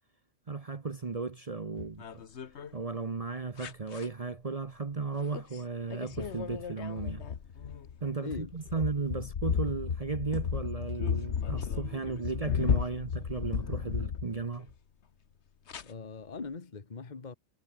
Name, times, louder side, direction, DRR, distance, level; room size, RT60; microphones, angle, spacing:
voice 1, 0.5-2.2 2.7-7.2 8.0-14.7, right 4 dB, 30° right, 0.8 m, -35 dB
sound 1, 1.8-2.7 3.6-4.1 5.3-5.6 5.9-14.7 15.7-15.8, left 7 dB, 55° left, 1.4 m, -34 dB
voice 2, 8.2-8.8 15.8-17.4, left 4 dB, 35° left, 1.5 m, -41 dB
omnidirectional pair, 1.4 m